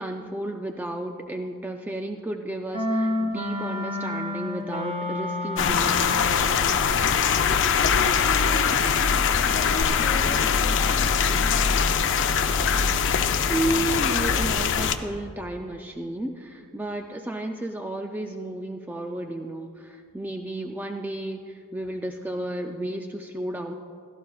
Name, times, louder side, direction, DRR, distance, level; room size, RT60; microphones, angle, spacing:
voice 1, 0.0-6.2 13.5-23.7, right 1 dB, 10° right, 3 dB, 0.3 m, -32 dB
Clarinet - F major, 2.7-6.5, left 1 dB, 25° right, 1.3 m, -29 dB
sound 1, 5.6-15.0, left 6 dB, 55° left, 0.5 m, -22 dB
voice 2, 7.3-8.9 9.2-11.4, left 1 dB, 40° left, 2 dB, 1.6 m, -36 dB
16.5 x 13.5 x 2.3 m, 2.3 s
head